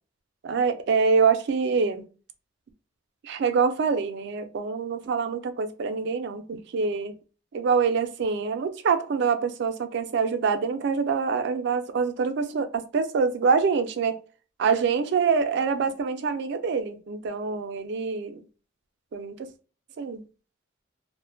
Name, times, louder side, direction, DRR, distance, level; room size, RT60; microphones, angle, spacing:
voice 1, 0.4-2.1 3.2-7.2 7.5-14.2 14.6-18.4 19.1-19.5 20.0-20.2, right 5 dB, 60° right, 0.3 m, -25 dB
2.5 x 2.1 x 2.5 m
head